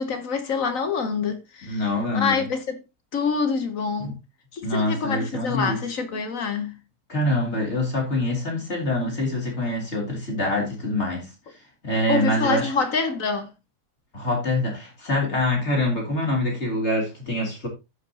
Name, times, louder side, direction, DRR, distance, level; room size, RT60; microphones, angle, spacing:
voice 1, 0.0-1.8 2.1-2.8 3.1-4.1 4.5-6.7 12.1-13.5, left 5 dB, 60° left, 1.3 m, -26 dB
voice 2, 1.7-2.4 4.0-4.2 4.6-5.8 7.1-11.3 11.8-12.7 14.1-17.7, left 1 dB, 45° left, 3.5 m, -25 dB
15.0 x 5.8 x 2.8 m
omnidirectional pair, 1.7 m